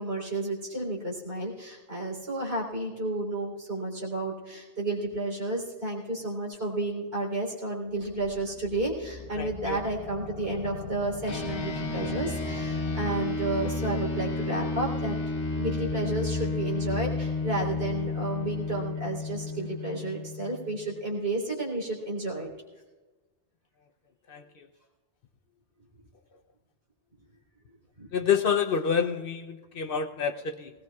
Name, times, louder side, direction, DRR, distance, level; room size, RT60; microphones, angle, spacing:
voice 1, 0.0-15.2 15.5-22.5 28.0-28.1, right 2 dB, 65° right, -2 dB, 3.8 m, -32 dB
sound 1, 8.0-13.6, left 3 dB, 30° left, 1.6 m, -43 dB
voice 2, 9.4-9.8 24.3-24.4 28.1-30.7, left 6 dB, 60° left, 7 dB, 0.8 m, -28 dB
sound 2, 11.3-21.0, left 3 dB, 80° left, 1.4 m, -32 dB
19.0 x 18.5 x 2.3 m, 1.3 s
omnidirectional pair, 1.1 m